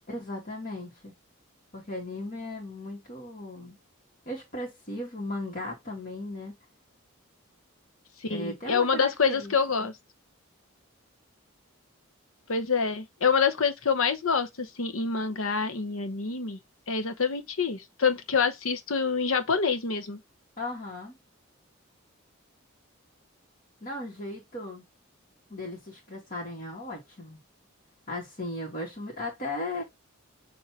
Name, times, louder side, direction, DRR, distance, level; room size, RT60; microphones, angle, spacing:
voice 1, 0.1-1.1 1.7-3.8 4.3-6.6 8.3-9.5 9.8-9.9 20.6-21.2 23.8-24.8 25.5-27.4 28.1-29.8, left 1 dB, 40° left, 1.8 m, -36 dB
voice 2, 8.2-9.9 12.5-16.6 16.9-20.2, left 5 dB, 75° left, 0.9 m, -26 dB
6.6 x 2.8 x 2.9 m
head